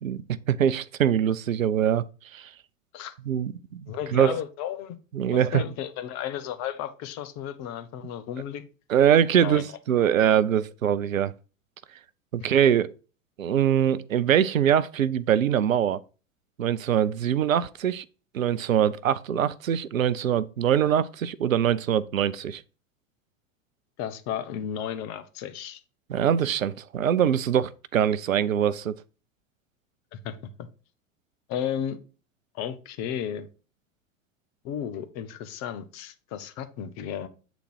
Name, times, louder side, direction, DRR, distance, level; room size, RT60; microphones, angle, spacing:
voice 1, 0.0-2.0 2.3-2.5 3.3-3.8 4.1-4.4 5.1-5.6 8.9-11.3 12.3-12.9 13.4-16.0 16.6-18.0 18.3-22.6 26.1-29.0, right 9 dB, 80° right, 0.6 m, -23 dB
voice 2, 3.9-5.0 5.3-8.6 9.4-9.7 24.0-25.8 30.1-30.7 31.5-32.0 32.5-33.5 34.6-37.3, left 9 dB, 40° left, 1.2 m, -33 dB
8.4 x 4.0 x 4.7 m
figure-of-eight pair, 90°, 39 cm